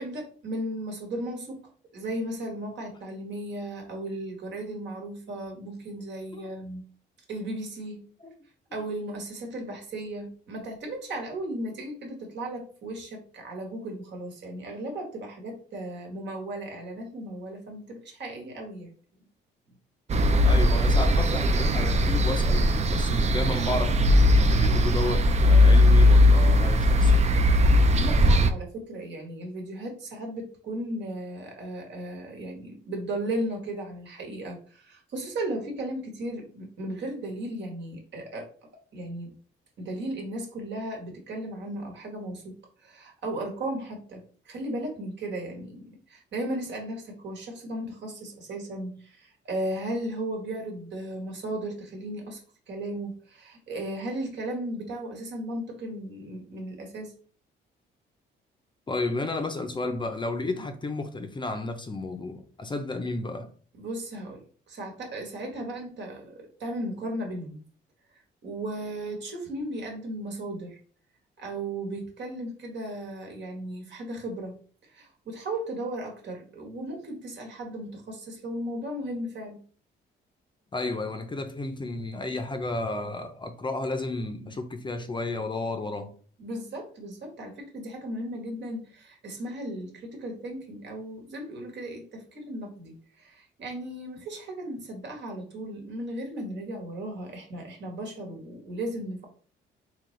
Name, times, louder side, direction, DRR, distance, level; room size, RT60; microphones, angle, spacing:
voice 1, 0.0-6.8 7.3-8.1 8.7-18.9 27.9-38.5 38.9-39.3 39.8-57.1 63.8-67.6 68.4-70.8 71.4-74.6 74.9-79.6 86.4-99.2, right 1 dB, 65° right, 1.4 m, -36 dB
sound 1, 20.1-28.5, left 1 dB, 35° right, 0.4 m, -19 dB
voice 2, 20.4-27.2 58.9-63.5 80.7-86.1, left 2 dB, 25° left, 0.6 m, -32 dB
3.8 x 3.0 x 3.2 m
cardioid pair, 90°, 20 cm